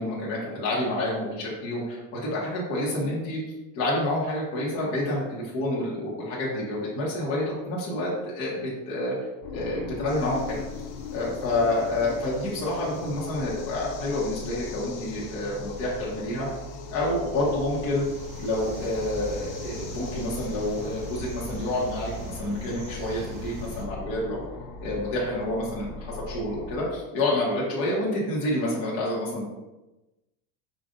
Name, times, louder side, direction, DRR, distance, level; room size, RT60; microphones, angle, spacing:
voice 1, 0.0-3.4 3.7-9.1 9.5-10.6 11.1-16.5 16.9-18.0 18.4-24.4 24.8-29.5, left 1 dB, 35° left, -6 dB, 1.1 m, -28 dB
sound 1, 9.4-26.8, left 3 dB, 60° left, 0.6 m, -40 dB
sound 2, 10.1-22.3, left 6 dB, 85° left, 1.1 m, -49 dB
sound 3, 17.5-23.8, equal, 25° right, 0.7 m, -41 dB
5.2 x 2.5 x 3.7 m, 1.0 s
cardioid pair, 170°, 39 cm